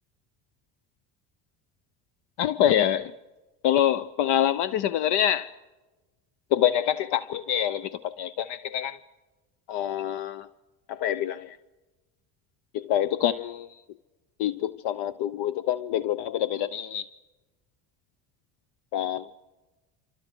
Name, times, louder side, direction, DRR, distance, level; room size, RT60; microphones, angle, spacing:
voice 1, 2.4-3.1 3.6-5.5 6.5-9.0 9.7-10.5 10.9-11.6 12.7-13.7 14.4-17.1 18.9-19.3, left 11 dB, 60° left, 0.8 m, -26 dB
26.0 x 26.0 x 6.2 m
supercardioid pair, 80°, 45 cm